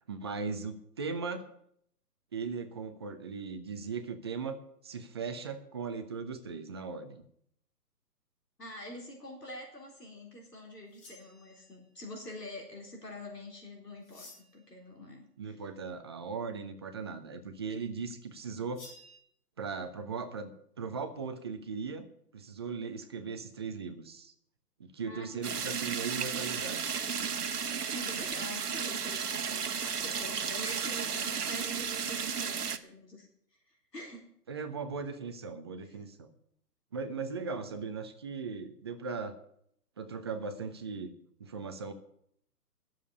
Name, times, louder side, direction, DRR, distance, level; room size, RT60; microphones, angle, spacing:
voice 1, 0.1-1.5 2.3-4.6 4.8-7.3 15.4-18.8 19.6-22.1 22.3-24.3 24.8-26.9 34.5-36.3 36.9-39.4 40.0-41.1 41.4-41.9, right 5 dB, 15° right, 8 dB, 0.5 m, -38 dB
voice 2, 8.6-15.6 25.0-25.5 27.9-33.3 33.9-34.3, left 1 dB, 85° left, 0 dB, 4.0 m, -46 dB
sound 1, 10.9-11.8 14.0-14.7 18.7-19.2, left 2 dB, 40° left, 4.7 m, -53 dB
sound 2, 25.4-32.8, right 6 dB, 70° right, 1.2 m, -34 dB
11.0 x 7.4 x 9.4 m, 0.69 s
figure-of-eight pair, 135°, 47 cm